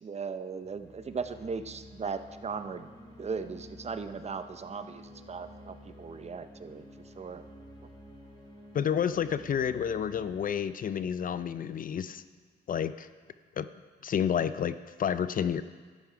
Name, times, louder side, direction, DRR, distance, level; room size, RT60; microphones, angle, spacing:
voice 1, 0.0-2.9 3.2-5.0 5.3-6.8 7.2-7.4, right 5 dB, 35° right, 10 dB, 0.7 m, -37 dB
sound 1, 0.6-12.1, left 1 dB, 20° left, 2.8 m, -52 dB
voice 2, 8.7-12.2 12.7-13.1 13.6-13.7 14.0-15.6, left 8 dB, 45° left, 13 dB, 0.5 m, -30 dB
12.5 x 9.0 x 5.0 m, 1.5 s
cardioid pair, 90°, 20 cm